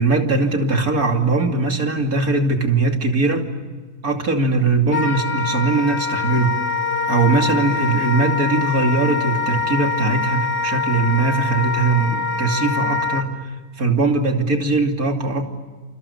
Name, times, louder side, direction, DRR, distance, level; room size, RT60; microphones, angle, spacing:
voice 1, 0.0-3.4 4.0-6.6 7.1-13.4 13.8-15.5, right 3 dB, 80° right, 3 dB, 3.2 m, -20 dB
Wind instrument woodwind instrument, 4.9-13.3, left 5 dB, 40° left, 2.5 m, -24 dB
29.5 x 28.0 x 7.0 m, 1.4 s
omnidirectional pair, 1.5 m